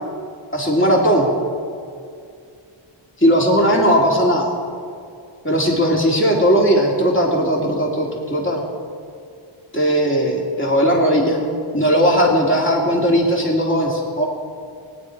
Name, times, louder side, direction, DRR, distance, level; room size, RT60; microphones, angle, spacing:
voice 1, 0.5-1.3 3.2-4.5 5.4-8.6 9.7-11.4 11.7-14.2, equal, 25° left, -2 dB, 2.9 m, -17 dB
19.5 x 9.5 x 4.7 m, 2.4 s
wide cardioid pair, 50°, 49 cm